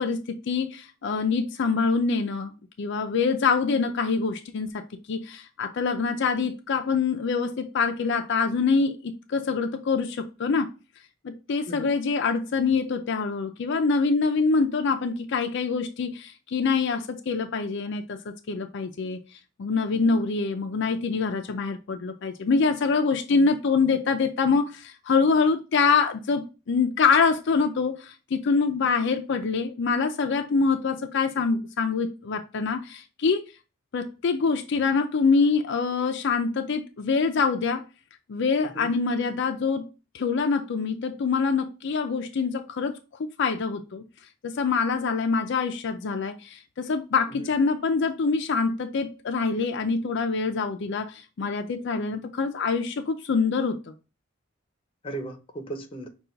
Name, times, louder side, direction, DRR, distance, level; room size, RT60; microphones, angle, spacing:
voice 1, 0.0-2.5 2.8-4.8 5.1-10.7 11.2-19.2 19.6-33.4 33.9-37.8 38.3-39.9 40.1-44.0 44.4-53.8, left 4 dB, 65° left, 0.4 m, -25 dB
voice 2, 55.0-56.1, right 2 dB, 30° left, 0.7 m, -37 dB
5.6 x 2.3 x 3.8 m
head